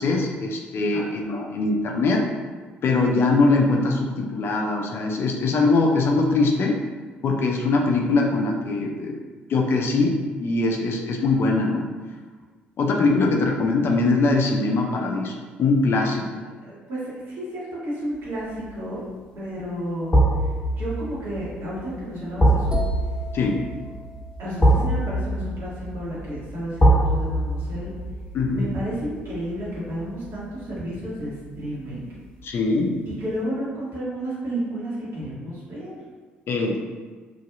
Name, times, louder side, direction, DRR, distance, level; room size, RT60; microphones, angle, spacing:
voice 1, 0.0-2.2 2.8-6.8 7.2-9.2 9.5-11.9 12.8-16.3 23.3-23.7 28.3-28.8 32.4-33.0 36.5-36.9, left 3 dB, 50° left, 1 dB, 0.4 m, -22 dB
voice 2, 16.6-19.0 19.3-20.1 20.4-20.5 20.8-22.7 24.4-27.9 28.5-32.1 33.0-36.0, right 1 dB, 55° right, -8 dB, 1.4 m, -32 dB
sound 1, 18.3-18.7 20.1-31.1 31.4-31.6, right 1 dB, 20° left, 1.1 m, -24 dB
sound 2, 22.7-26.5, right 1 dB, 15° right, 0.5 m, -34 dB
3.1 x 2.7 x 2.4 m, 1.4 s
figure-of-eight pair, 45°, 5 cm